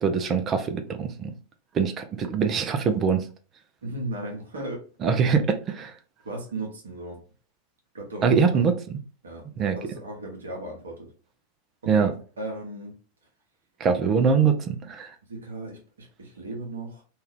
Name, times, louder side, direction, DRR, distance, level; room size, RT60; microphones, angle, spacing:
voice 1, 0.0-1.3 1.7-3.3 5.0-5.9 8.2-8.8 9.6-9.8 11.9-12.1 13.8-15.1, right 6 dB, 30° right, 0.5 m, -23 dB
voice 2, 3.8-4.9 6.2-7.2 7.9-8.7 9.2-11.1 11.8-13.0 15.3-17.0, right 2 dB, 70° right, 0.9 m, -36 dB
2.7 x 2.4 x 3.3 m
figure-of-eight pair, 85°, 0 cm